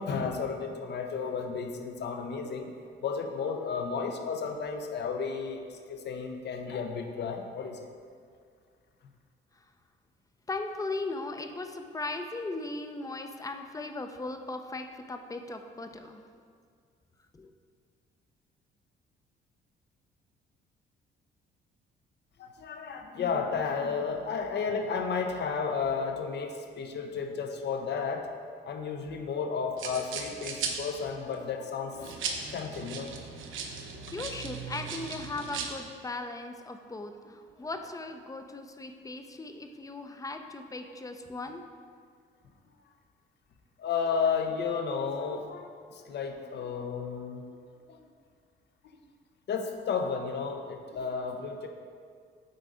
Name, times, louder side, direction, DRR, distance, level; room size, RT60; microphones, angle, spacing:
voice 1, 0.0-2.7 3.0-7.8 22.4-28.3 28.6-32.1 32.5-33.2 43.8-47.4 47.9-48.0 49.5-51.7, left 5 dB, 60° left, 5 dB, 0.8 m, -33 dB
voice 2, 10.5-16.2 17.3-17.5 34.1-41.6, left 2 dB, 15° left, 6 dB, 0.6 m, -38 dB
sound 1, 29.8-31.3 31.9-35.7, right 5 dB, 80° right, 0.8 m, -38 dB
7.8 x 4.0 x 4.9 m, 2.1 s
cardioid pair, 90°, 20 cm